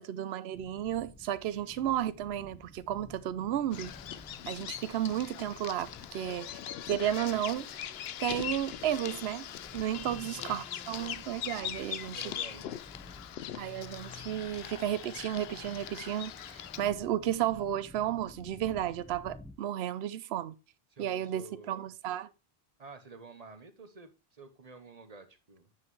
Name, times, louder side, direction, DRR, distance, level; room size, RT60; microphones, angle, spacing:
voice 1, 0.0-3.9 4.5-6.6 6.9-7.7 8.2-9.5 9.7-12.2 13.6-20.5 21.0-22.3, right 11 dB, 75° right, 0.8 m, -33 dB
sound 1, 0.5-19.5, left 2 dB, 5° left, 0.7 m, -53 dB
voice 2, 1.5-2.0 10.1-10.3 12.1-12.8 20.9-21.9 22.8-25.7, right 4 dB, 40° right, 1.0 m, -51 dB
Bird vocalization bird call bird song, 3.7-16.8, left 10 dB, 70° left, 0.8 m, -41 dB
8.7 x 5.6 x 3.1 m
omnidirectional pair, 1.1 m